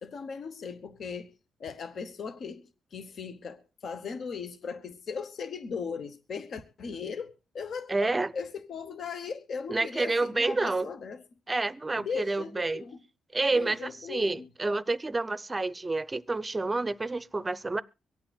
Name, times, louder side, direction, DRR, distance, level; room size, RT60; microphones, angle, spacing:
voice 1, 0.0-1.3 1.6-11.2 12.0-13.0 13.5-14.5, left 5 dB, 60° left, 1.0 m, -38 dB
voice 2, 7.9-8.3 9.7-10.9 11.5-12.8 13.3-17.8, right 3 dB, 20° right, 0.5 m, -29 dB
24.0 x 8.6 x 2.3 m
cardioid pair, 90°, 0 cm